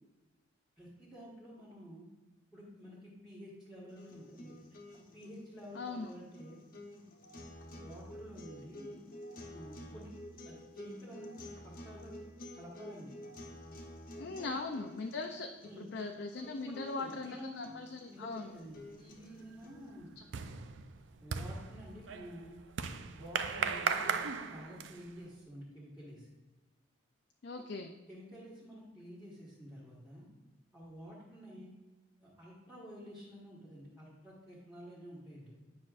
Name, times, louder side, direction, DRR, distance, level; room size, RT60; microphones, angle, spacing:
voice 1, 0.8-2.1 2.5-4.6 5.1-6.6 7.8-9.0 9.5-10.1 10.4-11.3 11.8-12.1 12.5-13.1 14.1-14.5 15.5-15.8 16.4-17.6 18.1-20.1 21.2-22.6 23.1-26.3 28.1-30.3 30.7-31.7 32.2-35.5, equal, 5° right, -9 dB, 1.4 m, -50 dB
sound 1, 3.9-19.9, left 1 dB, 45° left, 0.9 m, -51 dB
voice 2, 5.7-6.1 14.2-15.5 15.9-18.5 20.2-20.3 27.4-27.9, left 3 dB, 65° left, 4 dB, 0.4 m, -40 dB
sound 2, 18.7-19.1 19.4-25.2, right 6 dB, 75° right, 0.5 m, -37 dB
9.6 x 5.8 x 2.5 m, 1.1 s
head